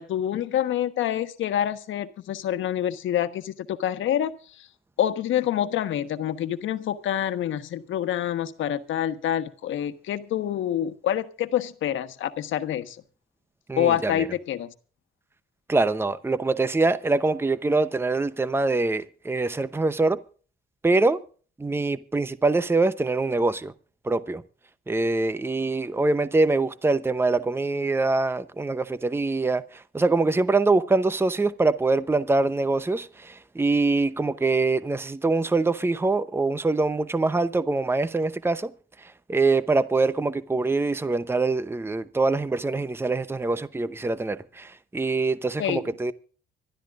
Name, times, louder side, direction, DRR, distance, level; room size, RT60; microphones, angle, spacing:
voice 1, 0.0-4.7 5.0-13.0 13.7-14.7 45.6-45.8, left 10 dB, 75° left, 1.3 m, -27 dB
voice 2, 13.7-14.3 15.7-20.2 20.8-21.2 21.6-23.7 24.0-24.4 24.9-38.7 39.0-46.1, right 3 dB, 10° right, 0.8 m, -24 dB
25.5 x 12.5 x 2.5 m
cardioid pair, 90°, 20 cm